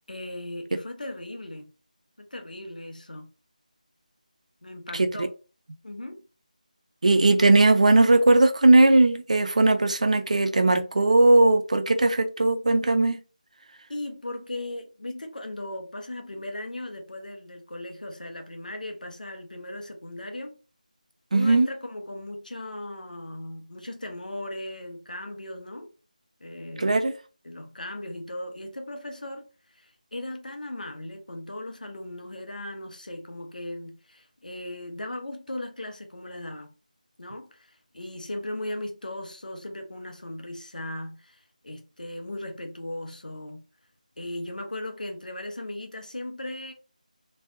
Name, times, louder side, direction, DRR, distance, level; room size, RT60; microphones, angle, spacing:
voice 1, 0.1-1.7 2.2-3.3 4.6-5.3 5.8-6.2 13.9-20.6 21.3-25.9 26.4-26.9 27.4-36.7 37.2-43.6 44.2-46.7, left 1 dB, 80° left, 1.1 m, -37 dB
voice 2, 7.0-13.2 21.3-21.7 26.8-27.1, right 2 dB, 60° right, 0.6 m, -19 dB
3.3 x 3.2 x 2.7 m
figure-of-eight pair, 170°, 4 cm